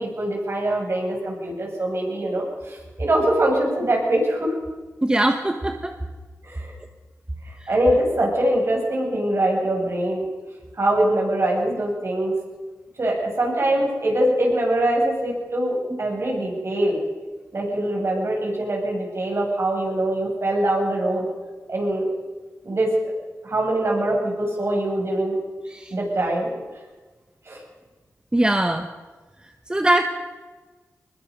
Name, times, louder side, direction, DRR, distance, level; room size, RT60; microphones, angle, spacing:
voice 1, 0.0-4.5 6.4-6.7 7.7-10.2 10.8-12.3 13.0-17.0 17.5-21.3 21.7-22.0 22.6-22.9 23.4-25.4 25.9-26.5 27.5-27.6, right 1 dB, 50° right, 0 dB, 7.6 m, -23 dB
voice 2, 5.0-6.0 25.7-25.9 28.3-28.9 29.7-30.0, right 1 dB, 15° right, 5 dB, 1.3 m, -21 dB
22.5 x 21.0 x 5.5 m, 1.3 s
wide cardioid pair, 75°, 6 cm